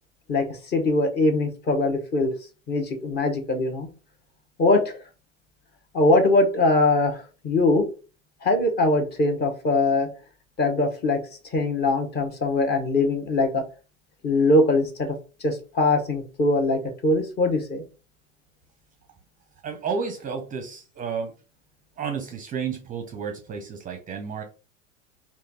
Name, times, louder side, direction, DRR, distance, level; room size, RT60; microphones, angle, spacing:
voice 1, 0.3-2.3 2.7-3.9 4.6-5.0 5.9-7.8 8.4-10.1 10.6-11.2 11.5-13.6 14.2-15.1 15.4-17.8, left 2 dB, 25° left, 5 dB, 0.9 m, -22 dB
voice 2, 19.6-21.3 22.0-24.4, right 6 dB, 20° right, 5 dB, 0.6 m, -31 dB
3.2 x 2.4 x 3.8 m, 0.34 s
hypercardioid pair, 100°, 38 cm